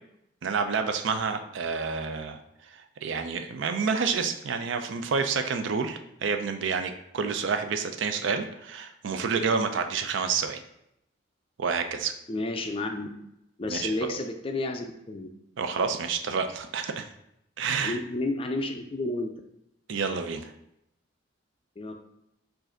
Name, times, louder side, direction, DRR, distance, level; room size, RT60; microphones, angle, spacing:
voice 1, 0.4-2.4 2.7-10.6 11.6-12.1 13.7-14.1 15.6-17.1 17.6-18.0 19.9-20.5, right 5 dB, 70° right, 7 dB, 0.4 m, -29 dB
voice 2, 12.3-13.1 13.6-15.3 17.8-19.3 21.8-21.9, left 2 dB, 25° left, 5 dB, 0.4 m, -31 dB
4.6 x 2.5 x 4.3 m, 0.81 s
head